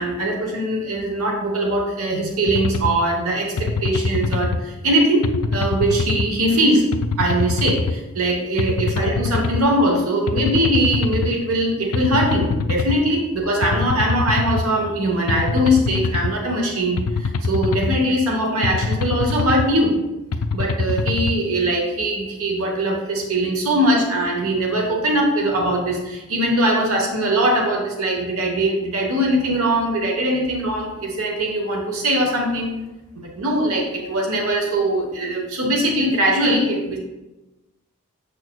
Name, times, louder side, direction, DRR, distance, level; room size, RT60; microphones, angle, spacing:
voice 1, 0.0-6.8 7.2-19.9 20.5-32.7 33.1-37.0, right 1 dB, 80° right, 1 dB, 1.0 m, -21 dB
sound 1, 2.5-2.9 3.6-4.6 5.2-6.3 6.9-7.9 8.6-9.6 10.3-11.3 11.9-13.0 13.6-14.6 15.3-16.3 17.0-18.0 18.6-19.7 20.3-21.3, left 4 dB, 75° left, 0.4 m, -23 dB
6.8 x 6.2 x 2.3 m, 1.0 s
head